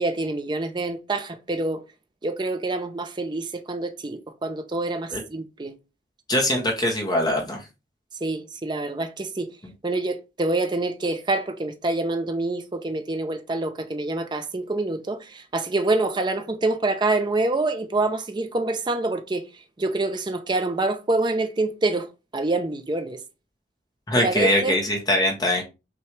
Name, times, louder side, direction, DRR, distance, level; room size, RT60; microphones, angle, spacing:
voice 1, 0.0-1.8 2.2-5.8 8.2-9.5 9.8-19.4 19.8-22.1 22.3-23.2 24.2-24.8, right 2 dB, 25° right, 0.5 m, -26 dB
voice 2, 6.3-7.6 9.6-9.7 24.1-25.6, left 1 dB, 20° left, 0.8 m, -22 dB
5.8 x 2.3 x 3.1 m
head